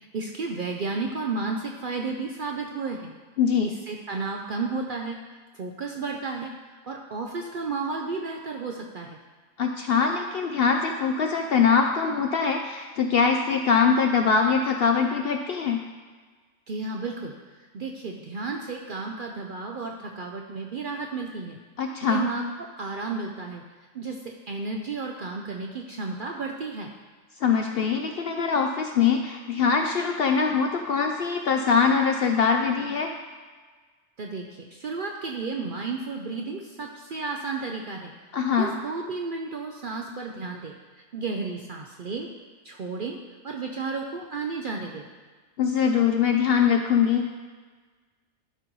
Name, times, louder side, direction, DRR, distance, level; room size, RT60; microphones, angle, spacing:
voice 1, 0.1-3.1 3.6-5.2 5.5-6.5 6.8-9.2 16.7-17.3 17.7-21.6 22.0-23.6 23.9-26.9 34.2-38.1 38.5-40.7 41.1-42.3 42.6-43.2 43.4-45.1, right 4 dB, 60° right, 1 dB, 0.6 m, -32 dB
voice 2, 3.4-3.7 9.6-15.8 21.8-22.2 27.4-33.1 38.3-38.7 45.6-47.3, left 6 dB, 65° left, 3 dB, 0.6 m, -23 dB
12.0 x 5.2 x 3.1 m, 1.4 s
omnidirectional pair, 1.4 m